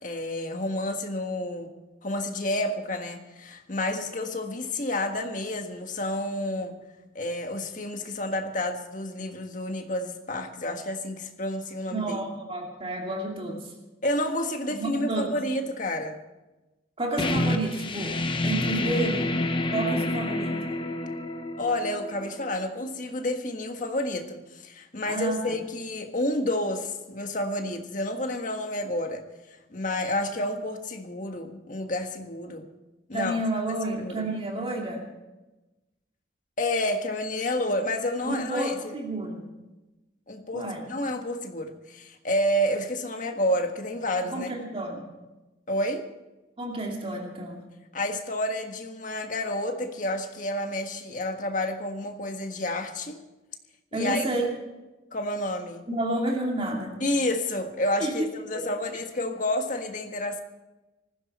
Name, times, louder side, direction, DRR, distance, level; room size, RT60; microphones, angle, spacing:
voice 1, 0.0-1.7 2.0-6.8 7.1-12.2 14.0-16.2 21.6-29.2 29.7-32.6 33.1-33.4 33.7-34.3 36.6-39.0 40.3-44.5 45.7-46.1 47.9-53.2 53.9-54.2 55.1-55.8 57.0-60.4, left 1 dB, 45° left, 4 dB, 1.6 m, -30 dB
voice 2, 11.9-13.7 14.7-15.3 17.0-18.2 18.4-19.4 19.7-20.7 25.1-25.6 33.1-35.1 38.3-39.5 40.5-40.8 44.3-45.1 46.6-47.6 53.9-54.5 55.9-57.0 58.0-58.6, right 1 dB, 30° right, 0 dB, 2.6 m, -30 dB
sound 1, 17.2-22.6, left 2 dB, 25° left, 1.0 m, -28 dB
19.5 x 15.5 x 4.3 m, 1.1 s
head